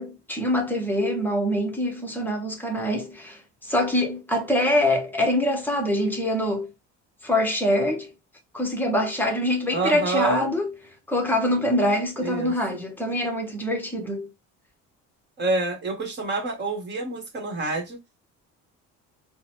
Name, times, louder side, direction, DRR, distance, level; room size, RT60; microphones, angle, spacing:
voice 1, 0.0-6.7 7.2-8.1 8.5-10.7 11.1-14.3, left 1 dB, 5° left, 0.8 m, -24 dB
voice 2, 9.7-10.5 12.2-12.5 15.4-18.0, right 3 dB, 35° right, 1.2 m, -27 dB
3.8 x 2.1 x 2.9 m
cardioid pair, 155°, 31 cm